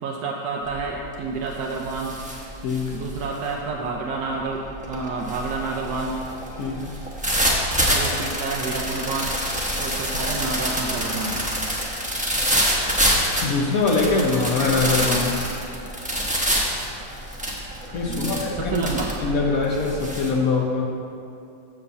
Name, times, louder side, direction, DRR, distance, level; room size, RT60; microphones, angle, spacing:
voice 1, 0.0-2.2 2.9-6.2 7.9-9.3 9.8-11.4 18.0-19.1, right 4 dB, 70° right, -1 dB, 1.1 m, -29 dB
sound 1, 0.7-1.0 1.4-20.3, equal, 5° right, 0.6 m, -26 dB
voice 2, 2.6-3.0 6.6-7.0 13.4-15.4 17.9-18.9 19.2-20.9, left 3 dB, 60° left, -1 dB, 1.0 m, -23 dB
7.0 x 5.2 x 6.7 m, 2.6 s
omnidirectional pair, 2.0 m